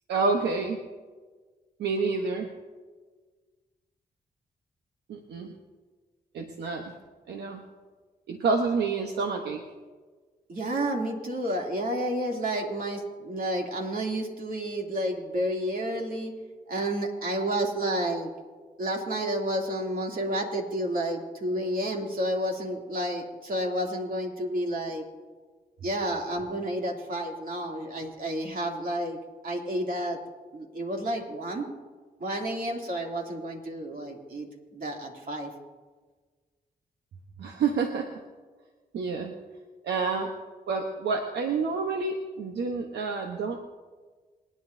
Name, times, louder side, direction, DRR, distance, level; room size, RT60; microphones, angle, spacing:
voice 1, 0.1-0.8 1.8-2.5 5.1-5.5 6.3-6.9 7.3-7.6 8.3-9.6 37.4-38.1 38.9-39.3 39.8-40.3 40.7-43.6, right 4 dB, 85° right, 3 dB, 1.0 m, -28 dB
voice 2, 10.5-16.3 16.7-18.3 18.8-25.0 25.8-29.2 29.4-30.2 30.5-31.7 32.2-34.5 34.7-35.5, right 1 dB, 55° right, 0 dB, 2.8 m, -30 dB
27.0 x 9.7 x 2.7 m, 1.4 s
supercardioid pair, 50°, 17 cm